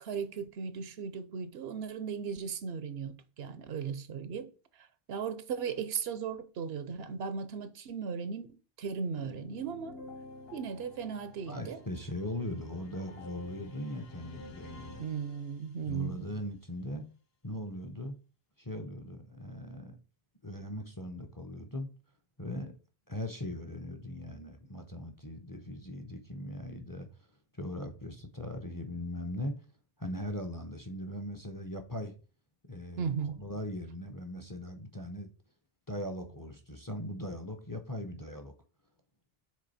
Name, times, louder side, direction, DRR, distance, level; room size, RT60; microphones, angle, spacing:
voice 1, 0.0-4.5 5.1-10.0 10.5-11.8 15.0-16.3 33.0-33.4, right 6 dB, 80° right, 0.9 m, -37 dB
sound 1, 9.2-15.9, left 3 dB, 70° left, 1.2 m, -50 dB
voice 2, 11.5-15.1 15.9-17.0 17.4-18.2 18.6-20.0 20.4-21.9 22.4-22.7 23.1-27.1 27.6-29.5 30.0-32.1 32.7-35.3 35.9-38.5, left 1 dB, 25° left, 0.6 m, -39 dB
6.3 x 3.8 x 4.1 m
omnidirectional pair, 1.0 m